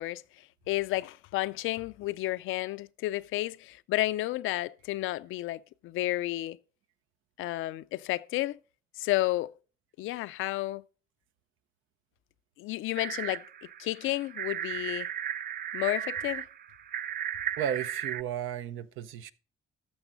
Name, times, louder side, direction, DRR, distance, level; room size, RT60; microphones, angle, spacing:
voice 1, 0.0-6.6 7.4-8.6 9.0-9.5 10.0-10.8 12.6-13.5 13.8-15.1 15.7-16.5, left 17 dB, 85° left, 0.4 m, -31 dB
sound 1, 13.0-18.2, right 10 dB, 50° right, 0.4 m, -35 dB
voice 2, 17.6-19.3, right 9 dB, 85° right, 0.7 m, -34 dB
13.0 x 6.3 x 3.9 m
cardioid pair, 90°, 20 cm